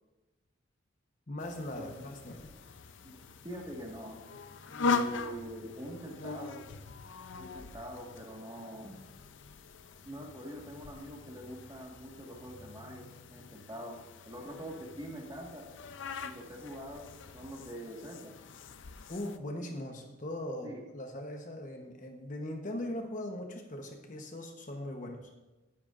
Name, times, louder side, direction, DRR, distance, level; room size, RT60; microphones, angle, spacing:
voice 1, 1.3-2.5 19.1-25.2, left 1 dB, 40° left, 3 dB, 1.0 m, -40 dB
sound 1, 1.4-19.4, left 4 dB, 60° left, 0.5 m, -41 dB
voice 2, 3.4-4.2 4.8-6.7 7.4-9.0 10.0-15.7 16.2-18.4 20.6-20.8, equal, 20° right, -1 dB, 1.7 m, -44 dB
16.0 x 10.5 x 2.5 m, 1.1 s
head